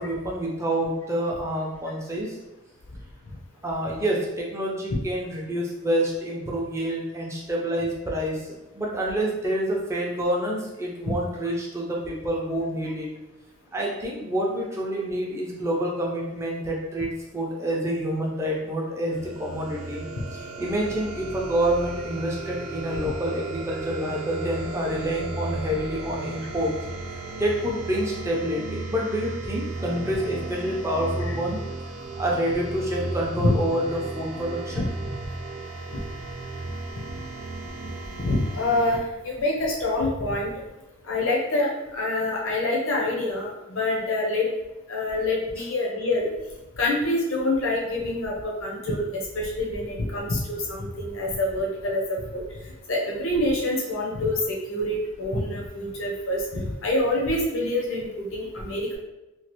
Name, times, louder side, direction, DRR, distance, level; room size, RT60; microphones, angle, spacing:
voice 1, 0.0-2.4 3.6-13.1 13.7-20.1 20.3-26.7 27.4-31.6 32.2-35.1, right 1 dB, 15° right, -3 dB, 0.5 m, -28 dB
sound 1, 19.1-39.0, right 3 dB, 90° right, 0.4 m, -35 dB
voice 2, 38.2-40.5 41.0-44.5 44.9-46.3 46.8-52.4 52.9-59.0, left 2 dB, 70° left, -2 dB, 0.7 m, -26 dB
3.1 x 2.3 x 2.9 m, 1.0 s
head